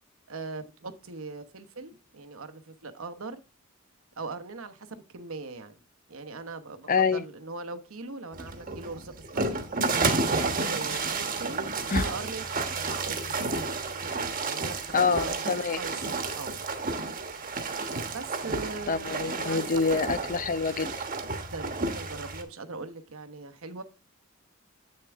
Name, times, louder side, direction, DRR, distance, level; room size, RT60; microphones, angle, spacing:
voice 1, 0.3-3.4 4.2-5.7 6.1-9.6 10.3-13.6 14.4-15.4 15.8-15.9 16.3-16.6 18.1-20.0 21.3-23.8, right 3 dB, 75° right, 1.0 m, -40 dB
voice 2, 6.9-7.2 10.9-11.0 11.9-12.1 14.9-15.8 18.9-21.1, left 5 dB, 40° left, 0.6 m, -26 dB
sound 1, 8.3-22.4, right 3 dB, 40° right, 1.2 m, -31 dB
8.2 x 6.7 x 3.5 m
head